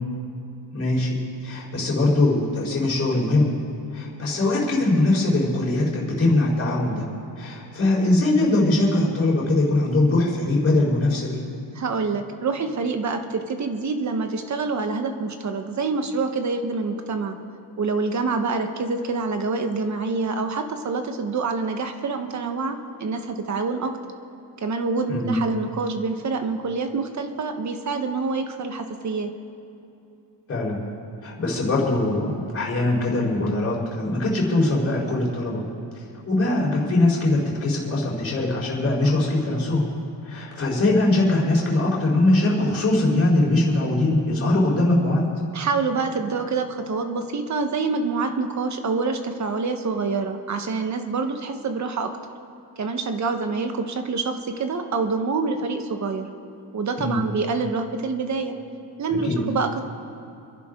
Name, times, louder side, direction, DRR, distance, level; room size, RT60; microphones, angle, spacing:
voice 1, 0.7-1.2 1.4-3.5 3.9-7.1 7.4-11.4 25.1-25.4 30.5-30.8 31.2-35.6 36.3-39.9 40.2-45.3 57.0-57.2 59.2-59.4, left 2 dB, 30° left, -4 dB, 4.3 m, -21 dB
voice 2, 11.7-17.4 17.8-23.9 24.6-29.3 45.5-52.1 52.8-56.3 56.7-58.6 59.0-59.8, right 4 dB, 40° right, 6 dB, 1.2 m, -26 dB
28.0 x 11.0 x 3.8 m, 2.8 s
cardioid pair, 155°, 43 cm